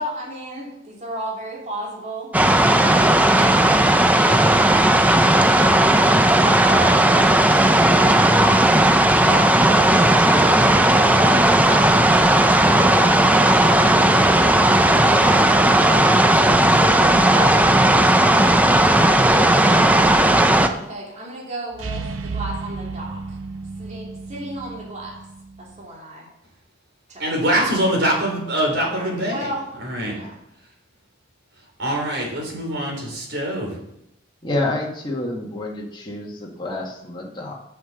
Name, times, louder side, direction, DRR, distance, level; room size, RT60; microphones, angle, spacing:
voice 1, 0.0-2.3 6.4-8.6 9.3-9.6 9.9-14.2 14.7-16.1 16.7-19.3 19.7-22.1 22.3-23.4 23.8-25.2 25.6-26.3 27.1-27.2 28.8-29.7 30.0-30.4, right 1 dB, 35° right, -4 dB, 2.9 m, -33 dB
sound 1, 2.3-20.7, right 1 dB, 10° right, 0.5 m, -15 dB
sound 2, 21.7-25.8, right 4 dB, 85° right, 0.8 m, -33 dB
voice 2, 27.2-29.5 29.8-30.2 31.8-33.7, right 1 dB, 65° right, -2 dB, 4.0 m, -23 dB
voice 3, 34.4-37.6, left 2 dB, 25° left, -2 dB, 1.9 m, -28 dB
7.8 x 7.6 x 6.8 m, 0.83 s
head